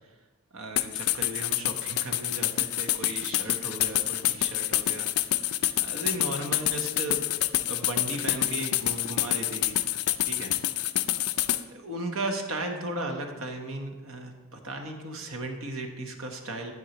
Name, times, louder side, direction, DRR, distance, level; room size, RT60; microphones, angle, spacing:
voice 1, 0.5-5.4 5.8-7.2 7.7-9.8 10.2-10.5 11.7-16.7, right 2 dB, 70° right, 3 dB, 1.2 m, -36 dB
sound 1, 0.8-11.6, left 14 dB, 85° left, 0.4 m, -27 dB
9.7 x 8.8 x 3.0 m, 1.2 s
head